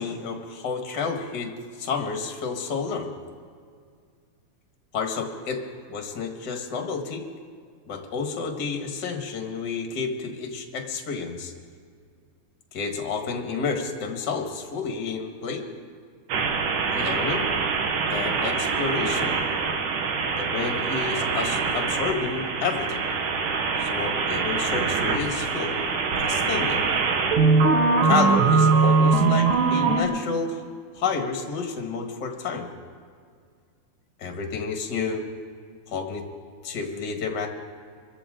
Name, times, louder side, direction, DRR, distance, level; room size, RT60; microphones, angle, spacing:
voice 1, 0.0-1.5 1.8-3.1 4.9-5.6 5.9-7.2 7.9-11.5 12.7-15.7 16.9-17.5 18.1-19.4 20.4-23.1 23.8-25.7 26.2-26.8 28.0-30.6 30.9-32.7 34.2-35.2 35.9-36.2 36.6-37.5, left 5 dB, 40° left, 3 dB, 1.8 m, -30 dB
sound 1, 16.3-30.0, right 4 dB, 85° right, 2.8 m, -23 dB
26.0 x 14.0 x 3.8 m, 2.1 s
omnidirectional pair, 3.6 m